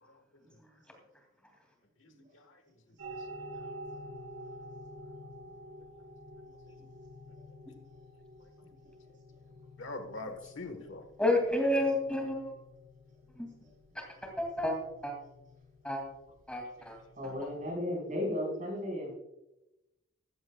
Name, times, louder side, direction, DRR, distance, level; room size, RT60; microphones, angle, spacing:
voice 1, 2.0-2.6 3.5-3.7 9.8-11.1, left 2 dB, 65° left, 7 dB, 1.4 m, -43 dB
sound 1, 3.0-17.7, equal, 85° right, 4.1 m, -49 dB
voice 2, 11.2-12.5 13.4-13.5 13.9-14.8 15.0-15.1 15.8-16.0 16.5-17.0, left 1 dB, 5° left, 1 dB, 2.5 m, -30 dB
voice 3, 17.2-19.1, left 1 dB, 40° right, 0 dB, 4.4 m, -35 dB
14.5 x 14.5 x 2.3 m, 0.93 s
head